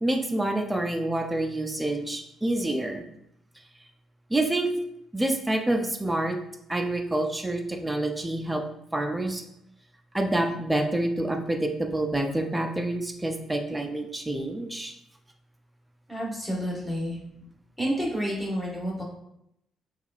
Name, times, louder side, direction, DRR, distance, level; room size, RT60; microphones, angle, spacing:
voice 1, 0.0-3.0 4.3-4.7 5.1-6.4 6.7-8.6 8.9-9.4 10.1-15.0, right 1 dB, 10° right, 4 dB, 0.4 m, -27 dB
voice 2, 16.1-17.2 17.8-19.0, equal, 5° left, -4 dB, 1.4 m, -29 dB
4.5 x 2.4 x 2.5 m, 0.77 s
cardioid pair, 90°, 0 cm